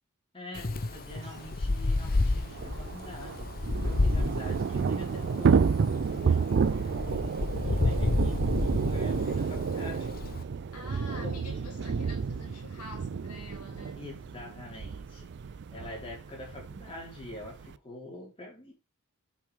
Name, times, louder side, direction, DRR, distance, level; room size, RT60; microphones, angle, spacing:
voice 1, 0.3-3.5 3.8-7.3 7.6-10.2 10.8-11.4 14.0-15.3 15.7-18.7, left 1 dB, 25° left, 4.2 m, -45 dB
Wind, 0.5-10.4, left 2 dB, 40° left, 0.8 m, -30 dB
Thunder / Rain, 1.2-1.3 1.5-1.6 1.9-17.8, right 5 dB, 50° right, 0.4 m, -30 dB
sound 1, 3.8-11.6, equal, 20° right, 2.2 m, -54 dB
voice 2, 10.7-14.0, left 2 dB, 85° left, 2.8 m, -47 dB
8.3 x 6.0 x 3.4 m
head